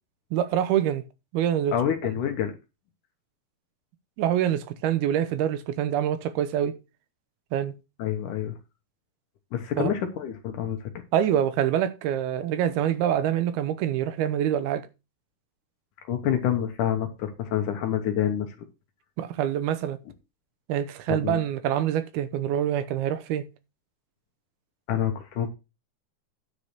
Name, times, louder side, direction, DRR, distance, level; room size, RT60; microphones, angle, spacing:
voice 1, 0.3-1.0 1.3-1.8 4.2-6.8 7.5-7.8 9.8-9.9 11.1-14.9 19.2-20.0 20.7-23.5, right 10 dB, 80° right, 2.8 m, -25 dB
voice 2, 1.7-2.5 8.0-8.6 9.5-10.8 16.1-18.5 21.1-21.4 24.9-25.5, left 10 dB, 70° left, 2.2 m, -27 dB
9.9 x 4.8 x 6.7 m
omnidirectional pair, 4.5 m